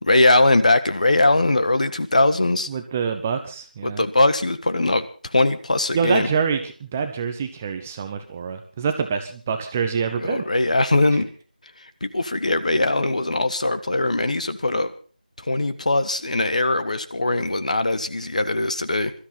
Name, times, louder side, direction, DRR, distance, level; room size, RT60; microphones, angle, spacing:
voice 1, 0.0-2.7 3.8-6.3 10.2-11.3 11.8-14.9 15.4-19.1, left 2 dB, 50° left, 11 dB, 1.5 m, -21 dB
voice 2, 2.7-4.0 5.9-10.4, right 6 dB, 10° right, 7 dB, 0.7 m, -26 dB
22.0 x 13.0 x 4.2 m, 0.40 s
figure-of-eight pair, 165°, 5 cm